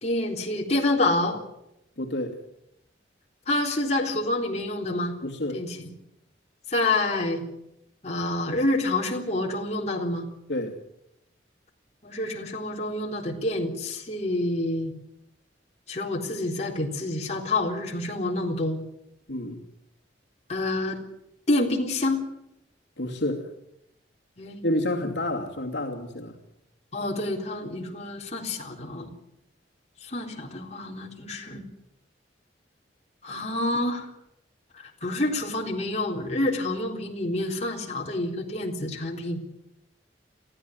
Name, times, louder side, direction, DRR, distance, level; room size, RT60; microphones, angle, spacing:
voice 1, 0.0-1.4 3.5-5.1 5.5-5.9 6.7-7.4 8.0-10.3 12.0-14.9 15.9-18.8 20.5-21.0 21.5-22.3 24.4-24.6 26.9-29.1 30.0-31.6 33.2-34.1 34.8-39.4, left 2 dB, 35° left, 0 dB, 3.8 m, -28 dB
voice 2, 2.0-2.4 5.2-5.6 10.5-10.8 19.3-19.6 23.0-23.5 24.6-26.4, left 1 dB, 70° left, 0 dB, 2.6 m, -29 dB
24.0 x 15.5 x 9.3 m, 0.83 s
head